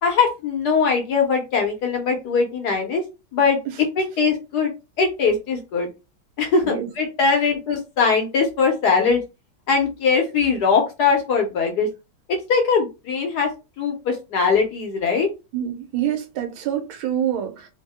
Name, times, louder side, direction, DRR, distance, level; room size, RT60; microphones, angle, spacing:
voice 1, 0.0-3.0 3.3-4.7 5.0-5.9 6.4-9.2 9.7-11.9 12.3-13.5 13.8-15.3, left 5 dB, 65° left, 1.1 m, -21 dB
voice 2, 15.5-17.7, right 10 dB, 85° right, 1.6 m, -26 dB
3.5 x 2.1 x 3.4 m
omnidirectional pair, 2.2 m